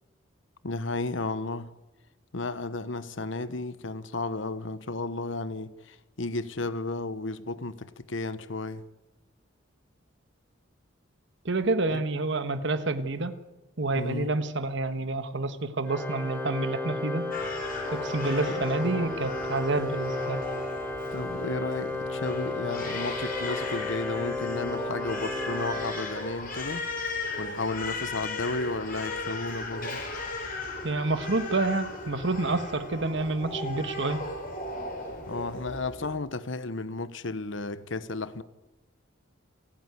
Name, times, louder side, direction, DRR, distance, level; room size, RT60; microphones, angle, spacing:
voice 1, 0.6-1.7 2.3-8.8 11.9-12.0 13.9-14.3 18.4-18.6 21.1-26.8 27.4-30.0 35.3-38.4, left 3 dB, 65° left, 1.1 m, -33 dB
voice 2, 11.4-13.4 13.8-17.3 17.9-20.4 30.8-34.3, right 2 dB, 65° right, 1.4 m, -28 dB
Organ, 15.9-26.7, left 2 dB, 10° left, 3.7 m, -34 dB
Crying sobbing, 17.3-36.1, left 2 dB, 45° left, 5.9 m, -37 dB
29.0 x 9.9 x 9.7 m
head